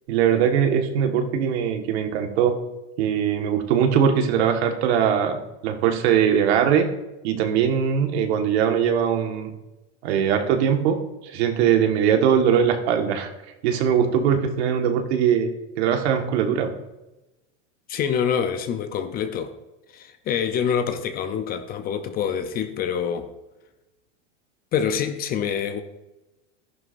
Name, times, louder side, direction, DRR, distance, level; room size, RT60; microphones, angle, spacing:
voice 1, 0.1-2.5 3.0-5.4 5.6-6.9 7.2-9.5 10.0-13.3 13.6-15.5 15.8-16.7, right 8 dB, 60° right, 1.6 m, -21 dB
voice 2, 17.9-19.5 19.9-23.3 24.7-25.8, left 7 dB, 25° left, 0.6 m, -26 dB
14.0 x 11.0 x 2.6 m
supercardioid pair, 140°, 36 cm